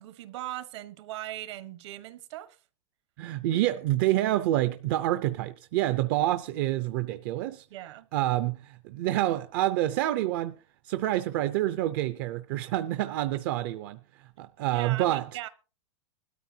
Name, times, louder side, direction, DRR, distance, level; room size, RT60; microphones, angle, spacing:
voice 1, 0.0-2.6 7.7-8.1 14.7-15.5, right 14 dB, 65° right, 1.3 m, -39 dB
voice 2, 3.2-7.6 8.1-10.6 10.8-15.3, right 14 dB, 45° right, 0.5 m, -27 dB
19.5 x 13.0 x 2.8 m
supercardioid pair, 170°, 16 cm